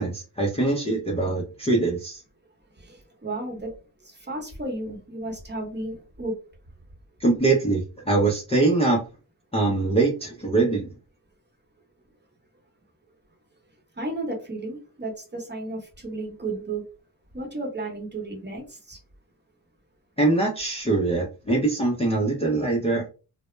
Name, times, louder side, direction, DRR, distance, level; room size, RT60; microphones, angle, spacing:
voice 1, 0.0-2.2 7.2-9.0 9.5-10.9 20.2-23.1, right 2 dB, 15° left, -2 dB, 0.5 m, -23 dB
voice 2, 2.8-3.7 4.0-6.4 14.0-16.8 17.3-19.0, right 2 dB, 25° right, 0 dB, 0.9 m, -33 dB
2.0 x 2.0 x 3.1 m, 0.33 s
cardioid pair, 85°, 44 cm